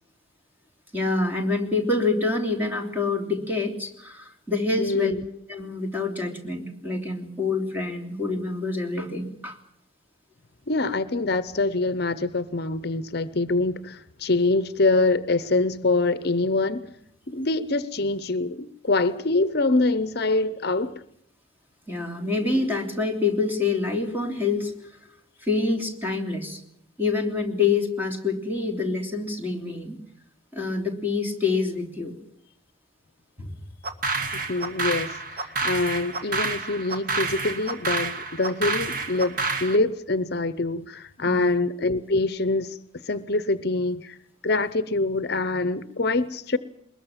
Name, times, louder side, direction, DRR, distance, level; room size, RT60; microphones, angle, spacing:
voice 1, 0.9-5.1 5.5-9.6 21.9-24.9 25.4-26.6 27.0-30.0 30.5-32.1 33.4-33.5 41.2-41.6, left 3 dB, 10° right, 3.2 m, -26 dB
voice 2, 4.8-5.3 10.7-16.8 17.3-20.9 34.3-42.8 43.0-44.2 44.4-46.6, left 2 dB, 50° left, 0.8 m, -25 dB
spacey claps, 33.8-39.8, right 3 dB, 45° right, 1.8 m, -29 dB
23.0 x 21.0 x 7.4 m
head